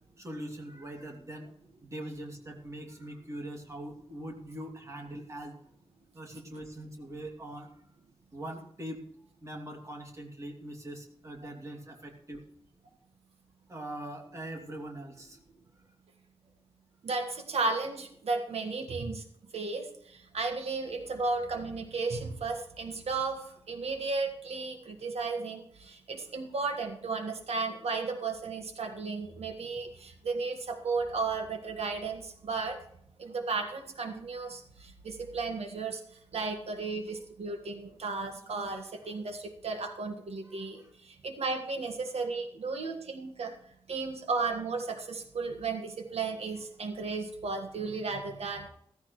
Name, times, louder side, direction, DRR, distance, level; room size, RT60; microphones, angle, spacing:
voice 1, 0.2-1.5 1.8-5.6 6.1-7.7 8.3-9.0 9.4-12.4 13.7-15.4 16.4-16.5 21.0-21.1 40.4-40.9, right 1 dB, 30° right, 1 dB, 2.8 m, -42 dB
voice 2, 17.0-19.2 19.5-32.8 33.2-36.0 36.3-43.5 43.9-48.7, right 4 dB, 85° right, 4 dB, 1.7 m, -34 dB
15.5 x 14.5 x 3.2 m, 0.69 s
wide cardioid pair, 160°, 10 cm